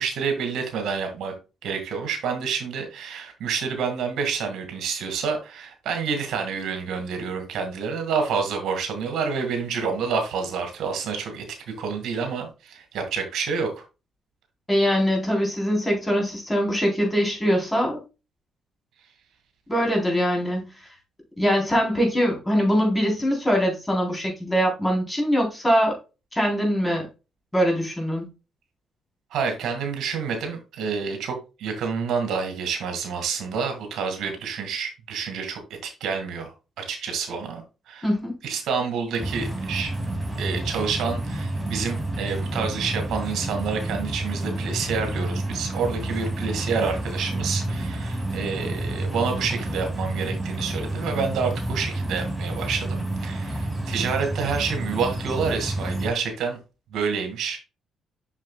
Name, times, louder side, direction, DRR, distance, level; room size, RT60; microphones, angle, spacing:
voice 1, 0.0-1.3 1.6-13.8 29.3-38.1 38.4-39.9 40.4-56.6 56.9-57.6, right 5 dB, 80° right, 2.1 m, -28 dB
voice 2, 14.7-18.0 19.7-20.9 21.4-25.9 26.3-27.1 27.5-28.3 38.0-38.3, equal, 15° left, 3.8 m, -22 dB
sound 1, 39.2-56.1, right 1 dB, 5° right, 2.6 m, -29 dB
7.4 x 6.5 x 2.3 m
cardioid pair, 90°, 0 cm